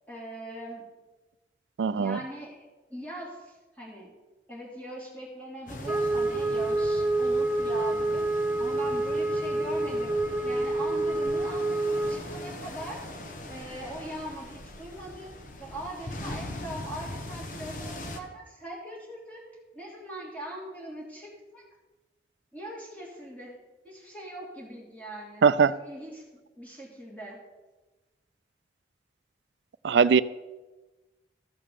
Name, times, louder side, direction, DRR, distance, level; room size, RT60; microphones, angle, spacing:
voice 1, 0.1-0.8 1.9-4.1 4.5-8.2 8.6-10.1 10.4-13.1 13.5-15.3 15.6-19.4 19.7-21.6 22.5-23.6 23.8-27.4, right 1 dB, 10° left, 3.0 m, -41 dB
voice 2, 1.8-2.2 25.4-25.7 29.8-30.2, right 6 dB, 90° right, 0.4 m, -20 dB
sound 1, 5.7-18.2, left 1 dB, 45° left, 1.1 m, -41 dB
Wind instrument woodwind instrument, 5.9-12.3, right 2 dB, 10° right, 0.7 m, -27 dB
14.0 x 5.6 x 6.6 m
head